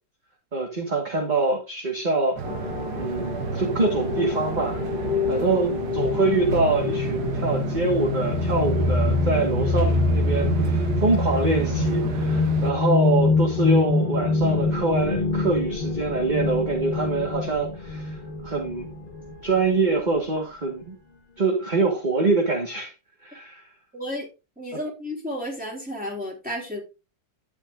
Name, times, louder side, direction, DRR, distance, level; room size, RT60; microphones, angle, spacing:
voice 1, 0.5-2.4 2.9-4.8 5.3-18.2 18.4-18.9 19.4-20.9 21.4-22.9 23.2-23.7, right 3 dB, 25° right, 1.5 m, -25 dB
sound 1, 2.4-19.6, left 3 dB, 30° left, 1.5 m, -25 dB
sound 2, 2.4-12.7, right 8 dB, 65° right, 1.3 m, -31 dB
voice 2, 23.9-24.3 24.6-26.8, equal, 5° right, 4.0 m, -32 dB
10.5 x 9.0 x 2.5 m
omnidirectional pair, 2.0 m